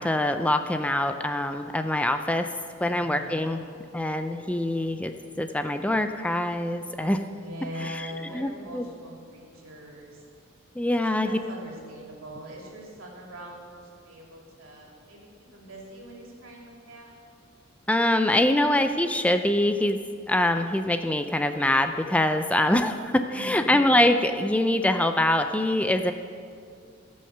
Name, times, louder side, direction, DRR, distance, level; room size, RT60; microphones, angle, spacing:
voice 1, 0.0-2.5 2.8-3.6 3.9-7.2 7.8-8.8 10.8-11.3 17.9-20.0 20.3-26.1, left 1 dB, 5° left, 7 dB, 0.4 m, -24 dB
voice 2, 2.7-3.6 7.2-10.2 10.9-13.8 14.0-17.1 23.3-23.7, equal, 80° right, -2 dB, 2.7 m, -42 dB
16.0 x 6.4 x 6.6 m, 2.3 s
head